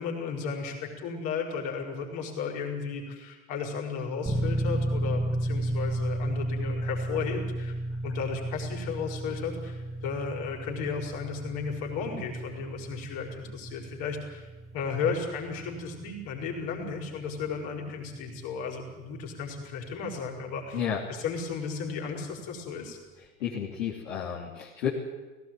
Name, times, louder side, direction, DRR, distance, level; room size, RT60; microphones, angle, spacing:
voice 1, 0.0-7.8 8.0-14.5 14.7-20.8 21.1-23.0, left 5 dB, 50° left, 1 dB, 5.3 m, -34 dB
sound 1, 4.3-21.0, right 1 dB, 10° right, 2.1 m, -34 dB
voice 2, 23.4-24.9, left 8 dB, 65° left, -5 dB, 3.3 m, -31 dB
17.5 x 17.0 x 9.2 m, 1.2 s
figure-of-eight pair, 85°, 42 cm